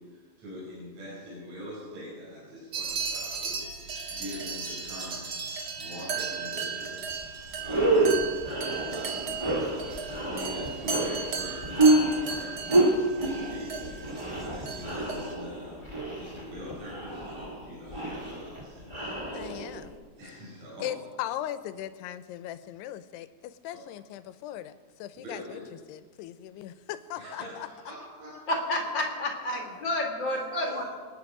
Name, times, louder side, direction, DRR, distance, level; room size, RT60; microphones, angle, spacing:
voice 1, 0.0-3.6 3.8-8.5 8.9-19.5 20.2-20.9 23.7-23.8 25.2-25.7 27.2-28.6 29.5-29.6 30.3-30.9, equal, 40° right, -7 dB, 6.4 m, -44 dB
sound 1, 2.7-15.3, right 5 dB, 80° right, 1.1 m, -36 dB
sound 2, 7.1-7.2 7.6-19.9, right 2 dB, 20° right, 0.7 m, -28 dB
voice 2, 19.3-19.9 20.8-27.7, left 12 dB, 80° left, 12 dB, 2.7 m, -38 dB
voice 3, 28.5-30.8, left 1 dB, 40° left, 1 dB, 1.7 m, -30 dB
27.5 x 9.9 x 4.9 m, 1.6 s
omnidirectional pair, 4.9 m